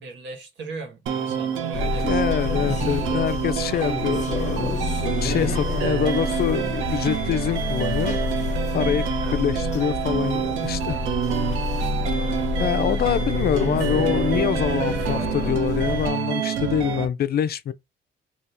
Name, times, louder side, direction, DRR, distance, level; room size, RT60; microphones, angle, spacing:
voice 1, 0.0-3.7 9.2-9.4, right 3 dB, 70° right, 1.4 m, -40 dB
sound 1, 1.1-17.1, right 8 dB, 85° right, 0.7 m, -27 dB
sound 2, 1.7-16.1, left 6 dB, 35° left, 0.8 m, -29 dB
voice 2, 2.0-4.8 5.2-8.5 8.7-9.1 9.3-11.0 12.6-17.7, left 9 dB, 50° left, 0.4 m, -25 dB
2.8 x 2.8 x 3.3 m
cardioid pair, 90°, 20 cm